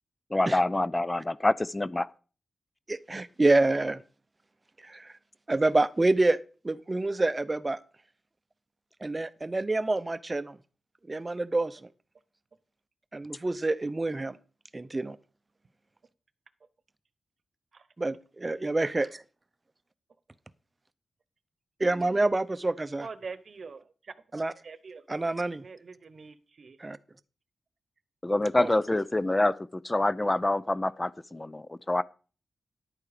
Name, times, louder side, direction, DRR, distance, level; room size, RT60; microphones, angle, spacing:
voice 1, 0.3-2.1 28.2-32.0, left 2 dB, 20° left, 0.5 m, -26 dB
voice 2, 2.9-4.0 4.8-5.1 5.5-6.4 6.6-7.8 9.0-10.6 11.1-11.8 13.1-14.4 14.7-15.2 18.0-19.1 21.8-23.1 24.3-24.5 25.1-25.7 26.8-27.0 28.6-28.8, right 2 dB, 25° right, 0.7 m, -27 dB
voice 3, 23.0-23.8 24.6-25.0 25.6-26.8, right 4 dB, 55° right, 1.0 m, -43 dB
11.0 x 8.7 x 5.0 m
cardioid pair, 80°, 0 cm